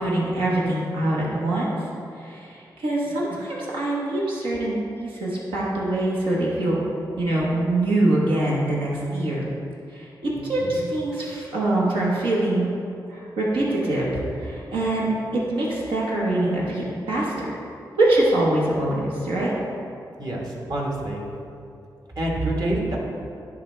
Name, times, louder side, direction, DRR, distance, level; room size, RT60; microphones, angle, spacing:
voice 1, 0.0-1.7 2.2-6.8 7.2-9.5 9.9-10.1 10.4-12.7 13.1-14.1 14.4-15.1 15.5-17.5 18.0-19.5, right 1 dB, 90° right, -5 dB, 1.2 m, -24 dB
voice 2, 10.4-10.8 20.2-21.2 22.2-23.0, right 1 dB, 55° right, -1 dB, 1.5 m, -27 dB
10.5 x 3.8 x 3.3 m, 2.5 s
supercardioid pair, 45°, 8 cm